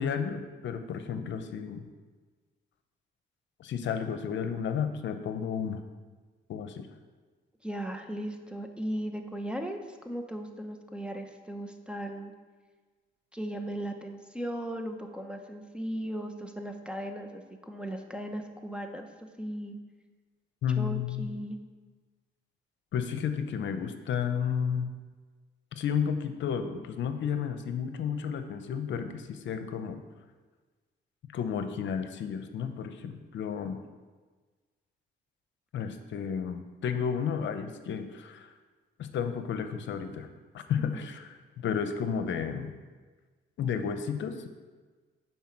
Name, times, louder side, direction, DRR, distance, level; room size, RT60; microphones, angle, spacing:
voice 1, 0.0-1.8 3.6-5.8 6.5-6.9 20.6-21.3 22.9-24.9 25.7-30.0 31.3-33.8 35.7-38.5 39.0-40.3 40.5-41.3 41.6-42.7 43.6-44.5, left 7 dB, 70° left, 8 dB, 0.8 m, -32 dB
voice 2, 7.6-12.3 13.3-19.8 20.7-21.6 40.8-41.1, right 1 dB, 5° right, 4 dB, 0.9 m, -37 dB
9.3 x 4.6 x 5.9 m, 1.4 s
cardioid pair, 90°, 20 cm